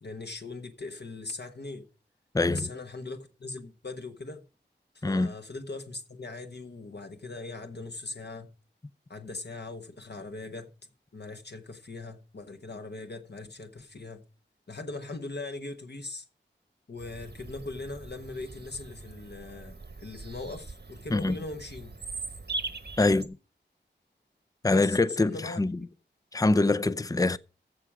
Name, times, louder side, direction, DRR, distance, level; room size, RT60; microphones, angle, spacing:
voice 1, 0.0-1.8 2.5-4.4 4.9-8.5 9.1-10.7 11.1-14.2 14.7-16.3 16.9-21.9 24.7-25.9, left 3 dB, 60° left, 1.3 m, -40 dB
voice 2, 2.3-2.7 5.0-5.3 21.1-21.4 23.0-23.4 24.6-25.8 26.3-27.4, left 2 dB, 20° left, 0.5 m, -24 dB
Bird vocalization bird call bird song, 17.0-23.2, right 3 dB, 60° right, 1.2 m, -41 dB
14.5 x 4.9 x 7.2 m
wide cardioid pair, 70°, 19 cm